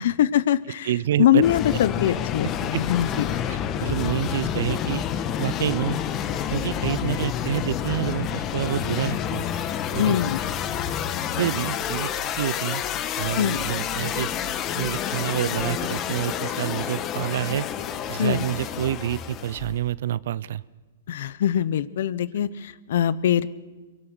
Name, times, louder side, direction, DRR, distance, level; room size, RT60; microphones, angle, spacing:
voice 1, 0.0-0.9 1.2-3.3 10.0-10.4 13.4-13.6 18.2-18.4 21.1-23.5, left 10 dB, 65° left, 19 dB, 0.8 m, -22 dB
voice 2, 0.8-1.4 2.7-2.8 3.5-5.0 5.4-6.0 6.5-9.5 9.9-10.2 11.4-12.1 12.4-12.8 13.2-14.3 14.8-17.7 18.1-20.6, right 11 dB, 65° right, 21 dB, 0.6 m, -27 dB
sound 1, 1.4-19.7, left 9 dB, 30° left, 1.3 m, -29 dB
sound 2, 11.8-19.8, left 1 dB, 5° left, 3.9 m, -47 dB
23.0 x 22.0 x 6.3 m, 1.3 s
hypercardioid pair, 130°, 0 cm